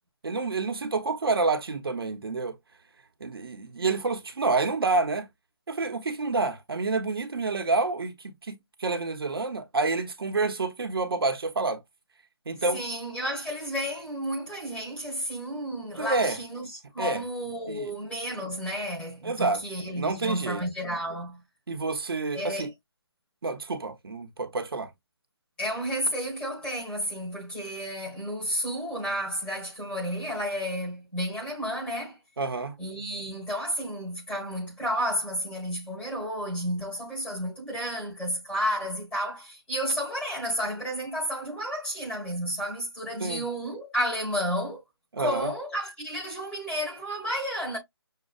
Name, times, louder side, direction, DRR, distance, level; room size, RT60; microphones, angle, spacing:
voice 1, 0.2-2.6 3.2-5.3 5.7-8.1 8.5-11.8 12.5-12.8 16.0-16.4 17.0-17.2 17.7-17.9 19.2-19.6 19.9-20.6 21.7-22.7 23.4-24.9 32.4-32.8 43.2-43.4 45.1-45.5, right 3 dB, 65° right, 0.9 m, -28 dB
voice 2, 12.7-21.4 22.3-22.7 25.6-32.2 32.8-44.8 45.2-47.8, equal, 10° left, 1.4 m, -32 dB
6.5 x 2.2 x 2.4 m
figure-of-eight pair, 165°, 14 cm